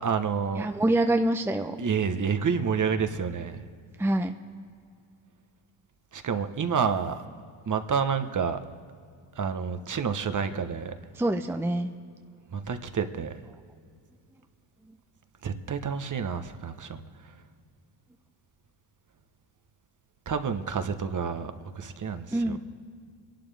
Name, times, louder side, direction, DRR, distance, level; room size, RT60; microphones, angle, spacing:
voice 1, 0.0-0.7 1.8-3.6 6.1-7.2 7.7-8.6 9.4-10.9 12.5-13.4 15.4-17.0 20.3-22.6, right 6 dB, 35° right, 9 dB, 1.1 m, -29 dB
voice 2, 0.6-1.8 4.0-4.3 11.1-11.9 14.9-15.0 22.3-22.6, right 1 dB, 5° right, 5 dB, 0.7 m, -26 dB
25.5 x 11.5 x 3.5 m, 2.2 s
supercardioid pair, 65°, 50 cm